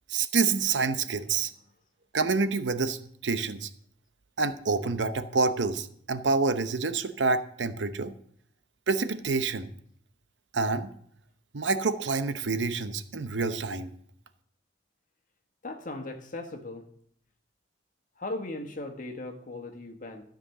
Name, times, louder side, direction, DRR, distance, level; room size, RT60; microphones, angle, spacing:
voice 1, 0.1-1.5 2.1-3.7 4.4-8.1 8.9-9.7 10.5-10.9 11.5-13.9, right 4 dB, 90° right, 11 dB, 0.8 m, -27 dB
voice 2, 15.6-16.9 18.2-20.2, left 2 dB, 45° left, 5 dB, 1.4 m, -38 dB
12.5 x 5.2 x 7.1 m, 0.65 s
head